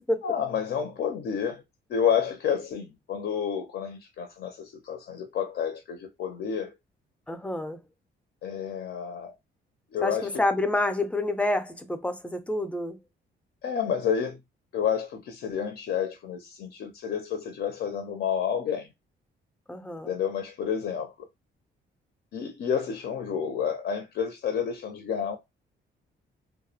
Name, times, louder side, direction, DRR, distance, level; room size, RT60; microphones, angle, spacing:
voice 1, 0.2-1.6 1.9-6.8 8.4-9.4 9.9-10.4 13.6-14.4 14.7-18.9 20.1-21.3 22.3-25.4, left 7 dB, 60° left, 0.5 m, -30 dB
voice 2, 7.3-7.8 10.0-13.0 19.7-20.1, left 2 dB, 5° left, 0.4 m, -28 dB
2.3 x 2.0 x 2.7 m
cardioid pair, 90°, 20 cm